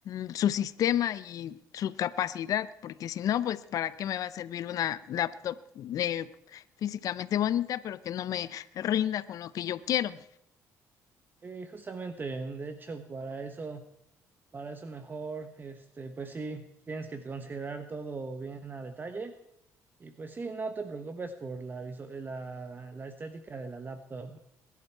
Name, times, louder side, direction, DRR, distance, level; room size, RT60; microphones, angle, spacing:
voice 1, 0.1-10.2, left 11 dB, 60° left, 16 dB, 0.6 m, -31 dB
voice 2, 11.4-13.8 14.5-19.3 20.0-24.4, right 4 dB, 30° right, 8 dB, 1.1 m, -39 dB
20.5 x 11.0 x 4.6 m, 0.80 s
cardioid pair, 95°, 7 cm